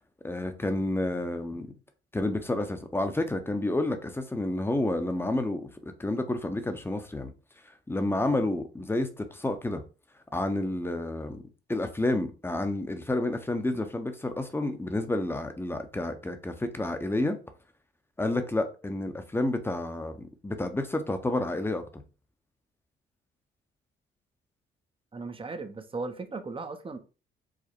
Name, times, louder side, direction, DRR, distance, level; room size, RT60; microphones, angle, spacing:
voice 1, 0.2-1.7 2.1-5.7 6.0-7.3 7.9-9.8 10.3-11.4 11.7-17.4 18.2-20.2 20.4-21.8, left 2 dB, 10° left, 0.8 m, -30 dB
voice 2, 25.1-27.0, right 3 dB, 25° right, 0.7 m, -37 dB
4.9 x 2.2 x 4.4 m
cardioid pair, 90°, 20 cm